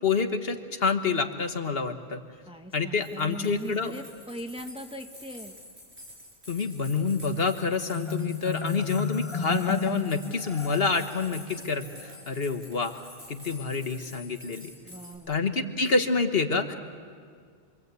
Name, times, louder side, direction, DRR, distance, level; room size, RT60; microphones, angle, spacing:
voice 1, 0.0-2.2 2.7-4.0 6.5-13.0 13.3-14.7 15.3-16.7, left 4 dB, 65° left, 7 dB, 1.6 m, -27 dB
voice 2, 2.5-5.6 14.8-15.5, equal, 5° right, 5 dB, 1.1 m, -40 dB
sound 1, 3.0-15.2, left 1 dB, 75° right, 6.6 m, -48 dB
Marimba xylophone, 7.9-11.3, left 4 dB, 30° left, 0.8 m, -32 dB
27.5 x 24.0 x 8.3 m, 2.1 s
omnidirectional pair, 1.1 m